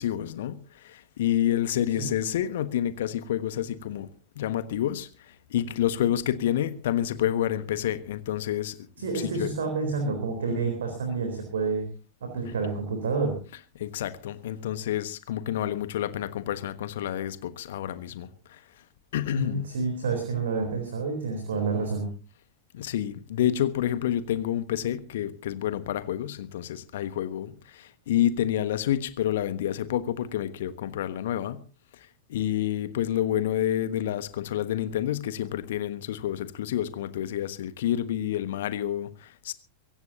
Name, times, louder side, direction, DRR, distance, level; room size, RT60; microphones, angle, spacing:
voice 1, 0.0-4.1 4.3-5.1 5.5-9.5 10.5-10.7 12.4-12.5 13.5-18.6 19.1-19.7 21.5-21.8 22.7-31.6 32.3-39.5, left 11 dB, 55° left, 1.4 m, -29 dB
voice 2, 9.0-11.9 12.2-13.4 19.4-22.1, right 4 dB, 65° right, 3.9 m, -29 dB
24.0 x 16.0 x 2.9 m
figure-of-eight pair, 90°, 0 cm